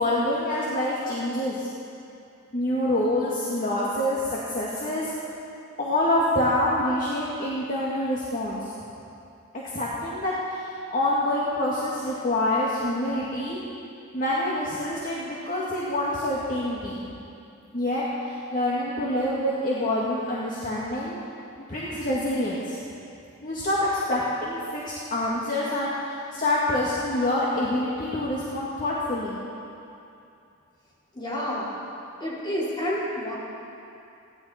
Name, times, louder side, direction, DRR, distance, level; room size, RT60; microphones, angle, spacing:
voice 1, 0.0-1.7 2.5-5.1 5.8-8.7 9.7-13.6 14.1-17.1 17.7-21.2 21.7-22.7 23.4-29.4, left 1 dB, 40° left, -6 dB, 1.9 m, -26 dB
voice 2, 31.1-31.8 32.2-33.3, equal, 20° left, -8 dB, 4.4 m, -29 dB
29.5 x 11.5 x 4.3 m, 2.7 s
head